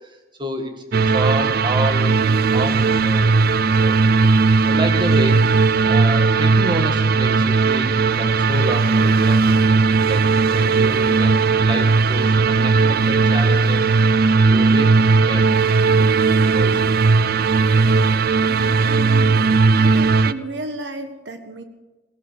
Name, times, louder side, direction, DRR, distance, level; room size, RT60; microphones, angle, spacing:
voice 1, 0.4-2.2 2.5-3.3 3.8-4.0 4.3-5.4 5.8-9.5 10.1-13.9 14.5-15.0 15.3-15.5 15.8-16.1 16.4-16.9, right 1 dB, 25° right, 5 dB, 1.8 m, -29 dB
sound 1, 0.9-20.3, right 4 dB, 55° right, 0.5 m, -17 dB
voice 2, 17.6-18.0 18.4-19.4 19.7-21.6, right 1 dB, 70° right, 8 dB, 1.6 m, -33 dB
17.5 x 11.0 x 6.7 m, 1.1 s
head